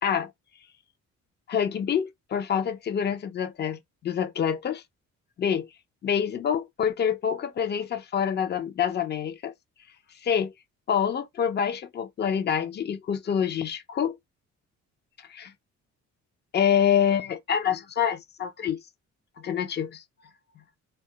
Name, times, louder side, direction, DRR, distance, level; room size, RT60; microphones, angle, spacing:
voice 1, 1.5-4.8 5.4-5.7 6.0-9.5 10.2-10.5 10.9-14.2 15.3-15.5 16.5-18.8 19.4-20.0, left 8 dB, 35° left, 0.5 m, -26 dB
2.3 x 2.1 x 2.7 m
cardioid pair, 90°, 30 cm